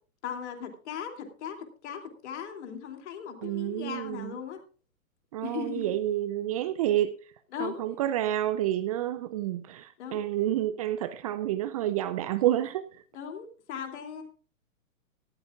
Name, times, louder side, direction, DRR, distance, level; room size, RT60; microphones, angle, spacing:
voice 1, 0.2-1.6 1.8-4.6 5.4-5.9 7.5-7.8 10.0-10.2 13.1-14.2, left 7 dB, 55° left, 2.8 m, -38 dB
voice 2, 3.4-4.4 5.3-7.1 7.6-13.0, right 13 dB, 30° right, 0.4 m, -29 dB
18.0 x 13.5 x 2.4 m
figure-of-eight pair, 115°, 41 cm